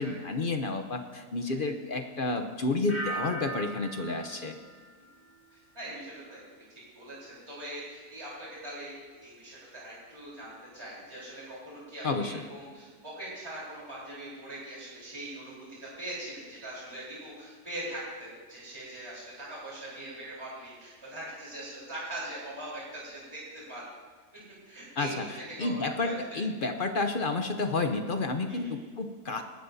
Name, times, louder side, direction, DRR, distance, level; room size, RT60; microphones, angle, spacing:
voice 1, 0.0-4.6 12.0-12.5 25.0-25.2 25.6-29.4, left 3 dB, 45° left, 6 dB, 0.7 m, -30 dB
sound 1, 2.9-5.7 6.0-6.5, right 2 dB, 10° left, 3.6 m, -40 dB
voice 2, 5.5-6.4 7.0-23.8 24.3-26.4 28.5-28.7, right 1 dB, 15° right, -7 dB, 3.8 m, -42 dB
19.0 x 14.5 x 2.7 m, 1.5 s
omnidirectional pair, 1.7 m